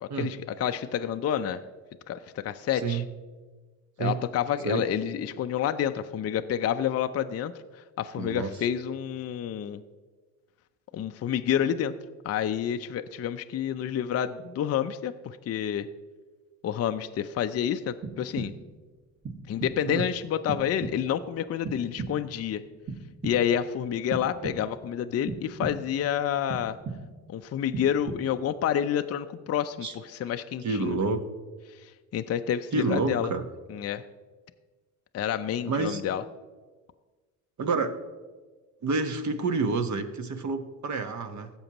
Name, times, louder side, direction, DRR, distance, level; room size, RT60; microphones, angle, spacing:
voice 1, 0.0-1.6 2.1-3.0 4.0-9.8 10.9-11.9 12.2-15.9 16.6-18.5 19.5-22.6 23.2-26.8 27.3-31.0 31.7-33.3 33.7-34.0 35.1-36.2, left 9 dB, 35° left, 8 dB, 0.5 m, -29 dB
voice 2, 8.2-8.5 19.9-20.1 29.8-29.9 30.6-31.2 32.7-33.4 35.6-36.0 37.6-37.9 38.8-41.5, right 4 dB, 45° right, 8 dB, 1.2 m, -28 dB
sound 1, 18.0-18.8 19.2-20.0 20.5-21.3 21.6-22.4 22.9-23.7 24.1-24.9 25.3-26.1 26.5-27.3 27.7-28.5, right 4 dB, 25° right, 1.6 m, -38 dB
16.5 x 7.1 x 3.0 m, 1.4 s
hypercardioid pair, 55°, 42 cm